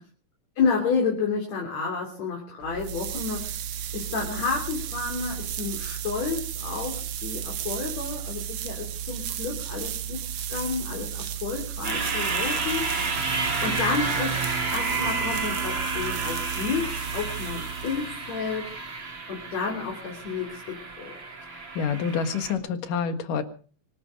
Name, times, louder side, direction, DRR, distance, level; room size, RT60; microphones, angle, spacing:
voice 1, 0.6-3.6 3.9-10.2 10.5-12.9 13.6-14.4 14.7-18.8 19.3-21.2, left 5 dB, 55° left, 0 dB, 4.5 m, -30 dB
sound 1, 2.6-18.4, right 9 dB, 80° right, 1.1 m, -34 dB
sound 2, 11.8-22.5, right 3 dB, 40° right, 3.6 m, -30 dB
voice 2, 21.7-23.4, left 6 dB, 85° left, 8 dB, 3.3 m, -27 dB
24.5 x 11.0 x 5.3 m, 0.42 s
omnidirectional pair, 3.6 m